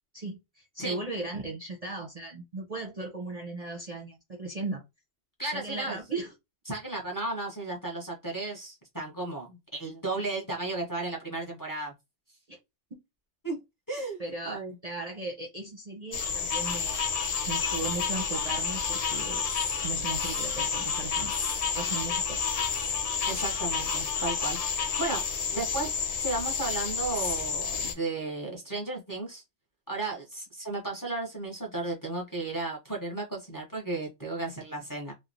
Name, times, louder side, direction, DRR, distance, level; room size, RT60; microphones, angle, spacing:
voice 1, 0.1-4.8 5.5-6.3 12.5-12.6 14.2-17.1 17.5-19.5 19.8-21.3 21.8-22.5, right 3 dB, 40° right, 0.6 m, -37 dB
voice 2, 5.4-6.0 6.7-11.9 13.4-13.6 13.9-14.7 23.2-25.2 25.5-29.4 29.9-35.1, right 2 dB, 20° left, 0.7 m, -34 dB
sound 1, 16.1-27.9, left 6 dB, 70° left, 0.3 m, -30 dB
3.2 x 2.1 x 2.5 m
omnidirectional pair, 1.2 m